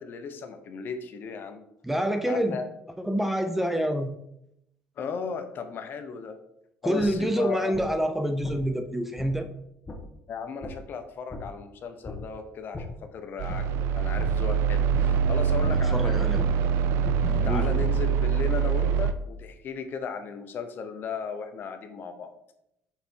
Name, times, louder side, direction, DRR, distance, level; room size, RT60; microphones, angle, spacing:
voice 1, 0.0-1.7 2.3-2.7 5.0-6.4 6.8-7.7 10.3-16.2 17.4-22.3, left 5 dB, 50° left, 8 dB, 0.8 m, -36 dB
voice 2, 1.8-2.6 3.0-4.1 6.8-9.5 15.7-16.4 17.4-17.7, equal, 5° right, 7 dB, 0.5 m, -27 dB
sound 1, 7.0-7.1 7.7-7.8 8.4-8.5 9.2-9.3 9.9-10.0 10.6-10.7 11.3-11.4 12.0-12.2 12.7-12.9 13.5-13.6 14.2-14.3 14.9-15.0 15.6-15.7 16.4-16.5 17.0-17.9, left 3 dB, 25° left, 1.2 m, -35 dB
sound 2, 13.4-19.1, right 7 dB, 80° right, 0.5 m, -24 dB
5.8 x 4.1 x 4.4 m, 0.79 s
cardioid pair, 110°, 4 cm